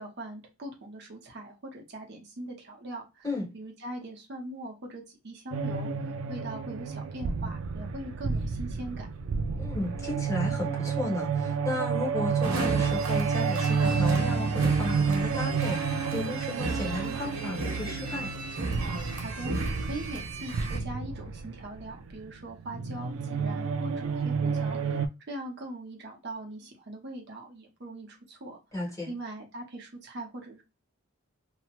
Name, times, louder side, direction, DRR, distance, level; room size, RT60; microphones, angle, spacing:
voice 1, 0.0-3.3 3.5-9.1 19.2-19.5 19.8-28.6 29.1-30.6, right 1 dB, 50° right, 0.8 m, -41 dB
sound 1, 5.5-25.1, right 5 dB, 70° right, 0.3 m, -30 dB
voice 2, 9.6-18.3 28.7-29.1, left 2 dB, 15° left, 1.0 m, -34 dB
sound 2, 12.4-20.8, right 3 dB, 90° right, 0.9 m, -35 dB
sound 3, 13.7-16.8, left 2 dB, 40° left, 0.8 m, -44 dB
2.7 x 2.0 x 2.8 m
head